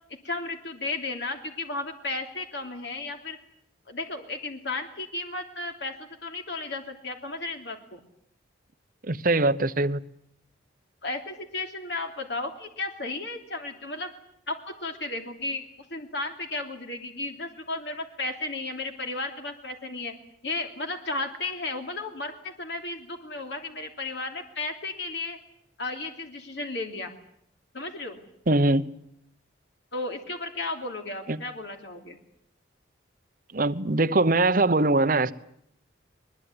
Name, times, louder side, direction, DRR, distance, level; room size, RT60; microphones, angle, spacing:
voice 1, 0.2-3.4 3.9-8.0 11.0-14.1 14.5-20.2 20.4-25.4 25.8-27.1 27.7-28.2 29.9-32.2, left 2 dB, 65° left, 3.0 m, -34 dB
voice 2, 9.1-10.0 28.5-28.9 31.3-31.4 33.5-35.3, right 2 dB, 45° right, 0.9 m, -22 dB
21.5 x 21.0 x 9.7 m
head